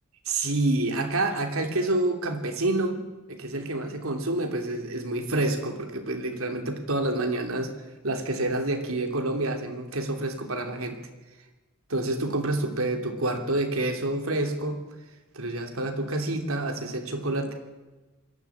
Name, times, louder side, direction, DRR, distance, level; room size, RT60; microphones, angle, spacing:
voice 1, 0.2-3.0 3.3-7.8 8.0-11.0 11.9-14.8 15.3-17.5, right 2 dB, 75° right, 5 dB, 3.0 m, -28 dB
21.5 x 14.5 x 8.7 m, 1.2 s
head